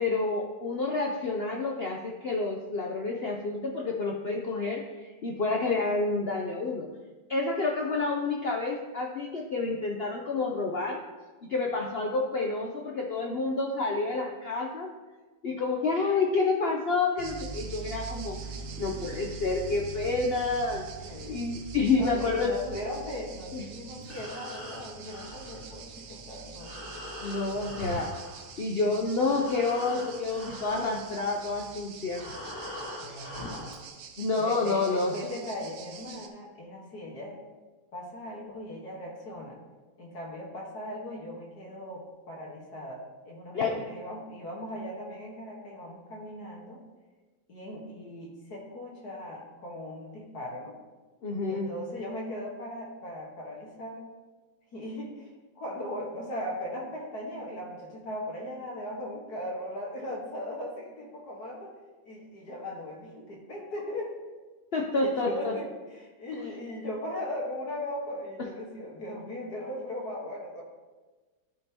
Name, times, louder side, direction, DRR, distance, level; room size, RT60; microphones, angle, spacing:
voice 1, 0.0-6.9 7.3-11.0 11.4-14.9 15.4-18.4 18.8-20.9 21.3-22.5 23.5-23.6 27.2-28.2 28.6-32.3 33.1-33.2 34.2-35.1 43.5-43.8 51.2-51.7 64.7-65.5, left 3 dB, 85° left, 0 dB, 0.5 m, -29 dB
sound 1, 17.2-36.3, right 5 dB, 70° right, 1.3 m, -44 dB
voice 2, 21.1-21.5 21.9-26.9 33.0-33.8 34.4-37.4 37.9-39.6 40.0-46.8 47.5-50.8 51.5-54.1 54.7-61.8 62.0-64.2 65.0-70.6, left 1 dB, 60° left, -3 dB, 1.9 m, -38 dB
Breathing, 23.9-28.9 29.2-33.9, left 1 dB, 40° left, 2.1 m, -42 dB
13.5 x 5.4 x 2.9 m, 1.3 s
omnidirectional pair, 2.0 m